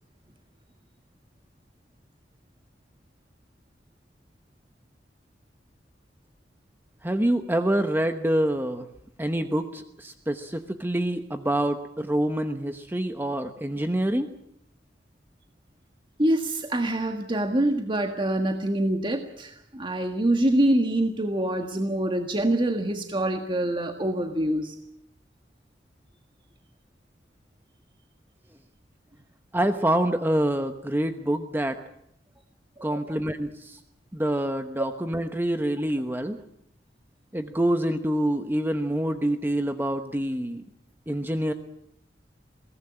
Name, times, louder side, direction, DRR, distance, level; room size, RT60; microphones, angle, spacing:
voice 1, 7.0-8.9 9.2-14.3 29.5-31.8 32.8-33.8 34.1-36.4 37.3-40.6 41.1-41.5, right 1 dB, 10° right, 7 dB, 1.0 m, -26 dB
voice 2, 16.2-24.7 32.8-33.2, right 1 dB, 30° right, 5 dB, 1.6 m, -25 dB
22.5 x 18.0 x 8.7 m, 0.74 s
head